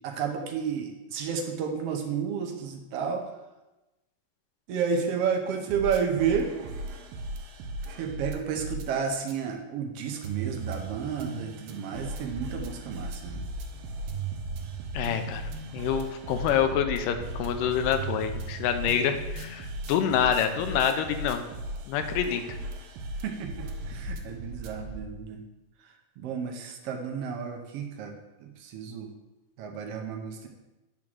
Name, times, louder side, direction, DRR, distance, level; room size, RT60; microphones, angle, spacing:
voice 1, 0.0-3.3 4.7-6.5 8.0-13.4 23.2-25.4 26.2-28.1 28.4-29.1 29.6-30.5, right 6 dB, 75° right, 3 dB, 1.5 m, -31 dB
sound 1, 5.7-8.8 9.3-9.4 10.0-25.1, right 2 dB, 90° right, 2.6 m, -37 dB
voice 2, 14.9-15.4 15.7-21.4 21.9-22.4, left 8 dB, 85° left, 7 dB, 2.3 m, -27 dB
10.0 x 3.7 x 6.2 m, 1.0 s
omnidirectional pair, 3.9 m